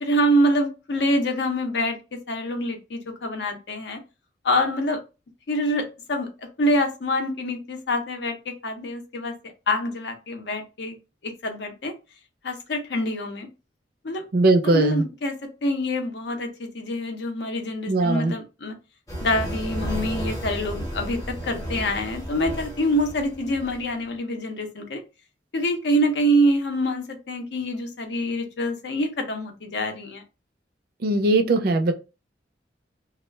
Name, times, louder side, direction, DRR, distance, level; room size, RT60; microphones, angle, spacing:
voice 1, 0.0-4.0 4.4-5.0 5.5-9.3 9.7-11.0 11.2-11.9 12.4-13.5 14.0-14.2 14.6-15.3 15.6-18.7 19.2-25.0 25.5-30.2, equal, 65° left, 0.6 m, -26 dB
voice 2, 14.3-15.0 17.9-18.3 31.0-31.9, right 2 dB, 55° right, 0.4 m, -20 dB
sound 1, 19.1-23.9, equal, 20° left, 0.7 m, -33 dB
2.3 x 2.1 x 3.1 m
head